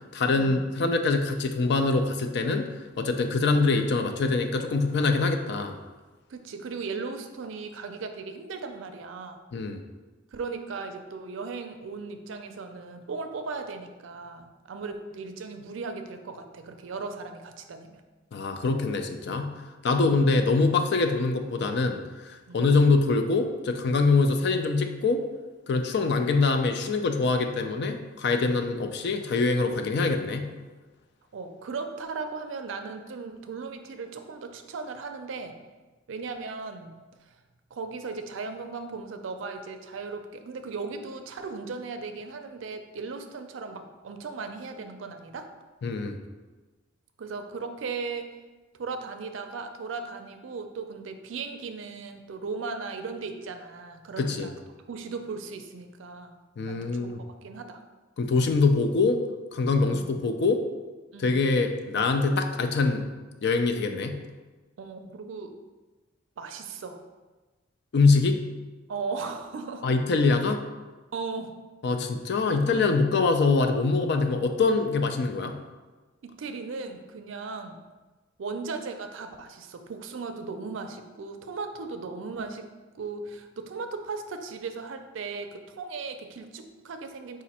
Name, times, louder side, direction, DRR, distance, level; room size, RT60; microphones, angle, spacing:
voice 1, 0.1-2.7 3.0-5.8 9.5-9.8 18.3-19.5 19.8-25.2 25.7-30.5 45.8-46.2 54.2-54.5 56.6-57.2 58.2-59.2 59.5-60.6 61.2-63.0 63.4-64.2 67.9-68.4 69.8-70.6 71.8-75.6, left 3 dB, 60° left, 6 dB, 0.4 m, -24 dB
voice 2, 6.3-9.4 10.3-18.0 22.5-22.7 31.3-35.6 36.1-37.0 37.3-37.4 37.7-45.5 47.2-48.3 48.8-54.5 54.9-56.4 56.6-57.1 57.4-57.8 59.8-60.1 61.1-61.5 64.8-65.5 66.4-67.0 68.9-69.8 71.1-71.5 76.2-77.8 78.4-82.7 83.0-87.4, right 4 dB, 70° right, 7 dB, 0.4 m, -37 dB
5.0 x 2.5 x 4.1 m, 1.2 s
head